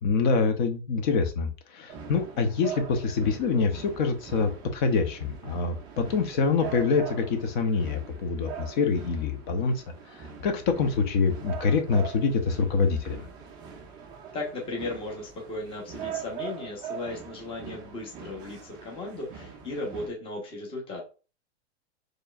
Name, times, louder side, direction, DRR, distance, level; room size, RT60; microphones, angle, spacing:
voice 1, 0.0-9.8 10.1-13.3, left 4 dB, 45° left, 6 dB, 0.9 m, -26 dB
sound 1, 1.9-20.1, right 7 dB, 15° right, 0.3 m, -42 dB
voice 2, 14.3-21.0, left 2 dB, 15° left, -1 dB, 1.0 m, -36 dB
4.4 x 3.2 x 2.4 m, 0.33 s
supercardioid pair, 150°, 32 cm